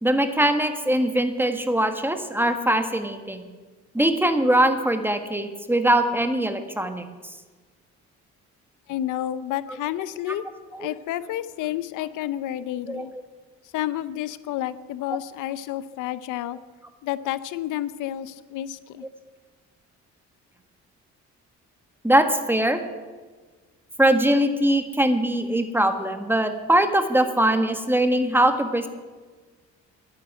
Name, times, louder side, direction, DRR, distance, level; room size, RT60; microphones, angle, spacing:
voice 1, 0.0-3.4 3.9-7.0 10.7-10.9 12.9-13.0 22.0-22.8 24.0-28.9, right 1 dB, 5° right, 8 dB, 1.6 m, -21 dB
voice 2, 8.9-10.4 10.8-13.1 13.7-16.6 17.0-19.0, left 12 dB, 90° left, 15 dB, 0.7 m, -30 dB
11.5 x 10.0 x 9.3 m, 1.4 s
cardioid pair, 90°, 30 cm